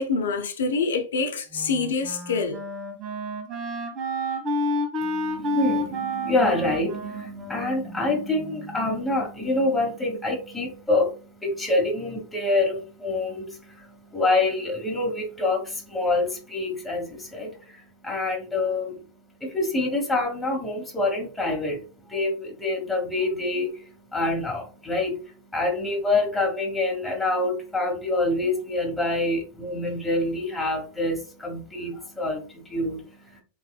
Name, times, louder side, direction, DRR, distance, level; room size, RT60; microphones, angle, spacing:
voice 1, 0.0-2.6, left 4 dB, 70° left, 0.9 m, -26 dB
Wind instrument woodwind instrument, 1.5-8.7, equal, 40° right, 1.4 m, -30 dB
voice 2, 5.0-33.4, left 2 dB, 10° left, 1.9 m, -26 dB
4.0 x 3.8 x 2.3 m
figure-of-eight pair, 90°, 0 cm